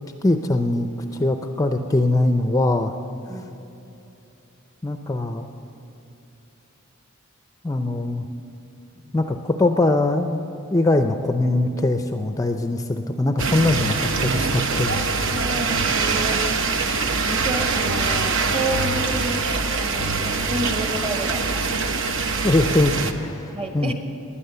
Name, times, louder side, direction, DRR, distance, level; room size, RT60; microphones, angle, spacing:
voice 1, 0.2-2.9 4.8-5.5 7.6-8.2 9.1-14.9 22.4-23.9, left 2 dB, 15° left, 6 dB, 0.5 m, -22 dB
sound 1, 13.4-23.1, right 4 dB, 60° right, 0.9 m, -23 dB
voice 2, 15.3-16.4 17.2-19.4 19.8-21.8 23.5-23.9, right 1 dB, 25° right, 5 dB, 1.2 m, -30 dB
20.0 x 10.0 x 6.8 m, 2.9 s
head